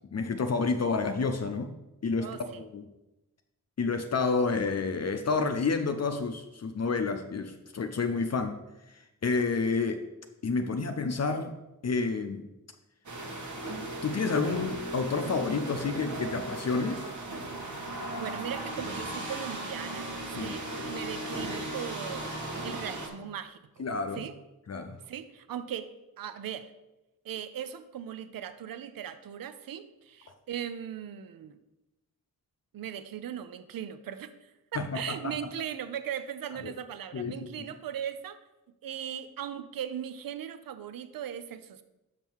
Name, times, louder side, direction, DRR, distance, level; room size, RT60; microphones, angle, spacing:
voice 1, 0.1-1.7 2.0-2.8 3.8-8.6 9.2-10.0 10.4-11.5 11.8-12.4 14.0-17.0 20.4-20.5 23.8-24.3 24.7-25.0 34.8-35.3 36.6-36.7 37.1-37.4, left 4 dB, 45° left, 6 dB, 0.6 m, -29 dB
voice 2, 2.2-2.6 18.2-20.1 20.4-22.3 22.6-23.8 24.2-24.4 25.1-25.9 26.2-26.7 27.2-31.6 32.7-38.4 38.8-41.8, right 9 dB, 75° right, 12 dB, 0.6 m, -38 dB
sound 1, 13.1-23.1, right 1 dB, 55° right, 1.4 m, -36 dB
5.9 x 5.4 x 4.6 m, 0.98 s
cardioid pair, 60°, 35 cm